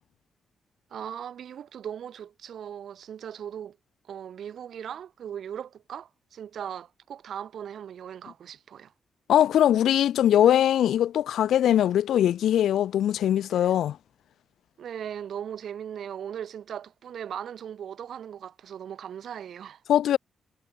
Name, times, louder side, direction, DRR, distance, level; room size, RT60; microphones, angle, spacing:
voice 1, 0.9-3.8 4.0-8.9 13.5-13.8 14.8-19.8, right 9 dB, 70° right, 2.5 m, -38 dB
voice 2, 9.3-14.0 19.9-20.2, left 11 dB, 90° left, 0.6 m, -21 dB
cardioid pair, 115°, 0 cm